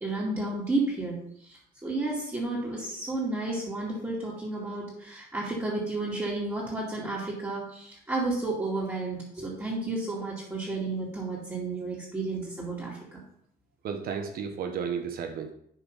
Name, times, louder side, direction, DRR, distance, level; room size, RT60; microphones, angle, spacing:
voice 1, 0.0-13.2, right 2 dB, 15° right, -7 dB, 2.4 m, -32 dB
voice 2, 13.8-15.5, right 6 dB, 60° right, 5 dB, 1.0 m, -33 dB
10.5 x 3.6 x 5.3 m, 0.69 s
cardioid pair, 110°, 17 cm